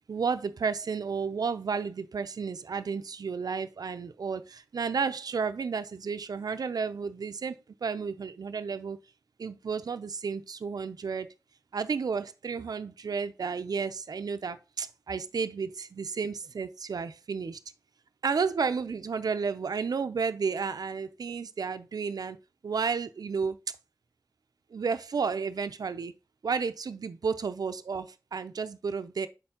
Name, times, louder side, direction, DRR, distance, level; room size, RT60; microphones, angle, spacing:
voice 1, 0.1-7.6 7.8-9.0 9.4-11.3 11.7-17.6 18.2-22.4 22.6-23.6 24.7-26.1 26.4-29.3, right 5 dB, 80° right, 0.5 m, -32 dB
6.3 x 4.4 x 3.6 m
cardioid pair, 50°, 7 cm